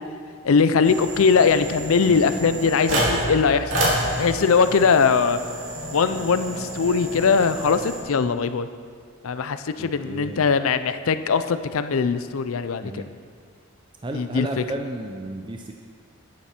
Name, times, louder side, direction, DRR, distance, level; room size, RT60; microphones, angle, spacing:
voice 1, 0.4-3.7 4.2-5.4 5.9-8.7 9.2-13.0 14.1-14.6, left 5 dB, 75° left, 11 dB, 0.5 m, -21 dB
sound 1, 0.8-8.0, right 1 dB, 70° right, 2.9 m, -29 dB
sound 2, 1.8-4.3 5.7-8.2, left 1 dB, 50° left, 1.8 m, -43 dB
voice 2, 9.8-10.4 12.8-13.1 14.0-15.7, right 2 dB, 20° right, 3 dB, 0.4 m, -33 dB
10.5 x 9.4 x 4.3 m, 2.1 s
head